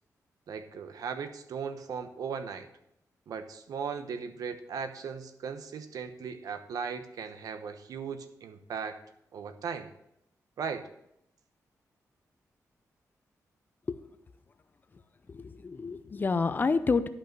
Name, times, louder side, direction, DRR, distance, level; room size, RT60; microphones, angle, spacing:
voice 1, 0.5-2.7 3.3-9.0 9.3-9.9 10.6-10.9, right 6 dB, 85° right, 8 dB, 0.9 m, -37 dB
voice 2, 15.3-17.1, left 4 dB, 30° left, 12 dB, 0.5 m, -28 dB
11.5 x 5.5 x 6.1 m, 0.78 s
wide cardioid pair, 145°, 6 cm